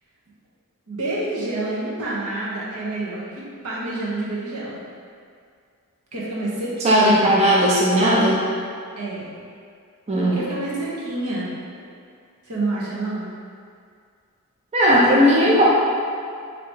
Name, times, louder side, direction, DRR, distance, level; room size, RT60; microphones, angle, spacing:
voice 1, 0.9-4.7 6.1-7.3 9.0-9.3 10.3-11.5 12.4-13.3, right 2 dB, 85° right, -7 dB, 1.0 m, -28 dB
voice 2, 6.8-8.4 10.1-10.4 14.7-15.6, equal, 30° right, -6 dB, 0.5 m, -16 dB
3.0 x 2.7 x 4.4 m, 2.2 s
head